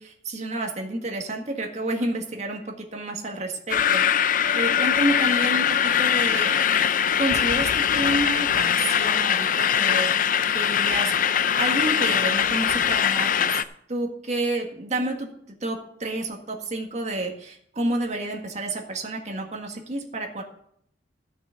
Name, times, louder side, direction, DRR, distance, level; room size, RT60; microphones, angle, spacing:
voice 1, 0.0-6.6 7.2-13.5 13.9-15.3 15.6-20.4, right 1 dB, 40° right, 2 dB, 1.7 m, -30 dB
sound 1, 3.7-13.6, left 8 dB, 50° left, 0.5 m, -22 dB
13.5 x 6.1 x 5.7 m, 0.69 s
head